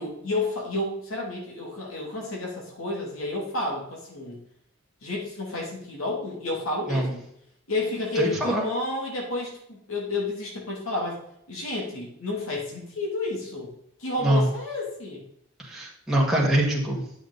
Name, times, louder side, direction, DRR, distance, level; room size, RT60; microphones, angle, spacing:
voice 1, 0.0-4.4 5.0-7.2 7.7-11.2 11.5-13.7 14.0-15.2, left 2 dB, 80° left, -2 dB, 2.8 m, -31 dB
voice 2, 8.2-8.6 14.2-14.5 15.6-17.0, right 1 dB, ahead, -4 dB, 1.8 m, -23 dB
9.9 x 7.1 x 4.0 m, 0.73 s
head